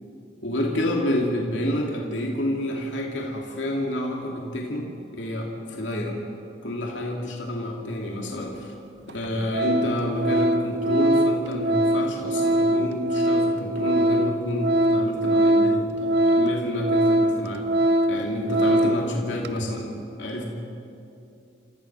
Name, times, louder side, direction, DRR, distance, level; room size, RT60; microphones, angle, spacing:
voice 1, 0.4-6.2 6.6-8.7 9.1-17.7 18.1-20.5, left 1 dB, 80° left, -1 dB, 2.6 m, -29 dB
Organ, 8.5-8.6 9.1-9.3 9.5-19.1 19.4-19.6, right 1 dB, 60° right, 0.7 m, -22 dB
28.5 x 15.0 x 6.2 m, 2.6 s
head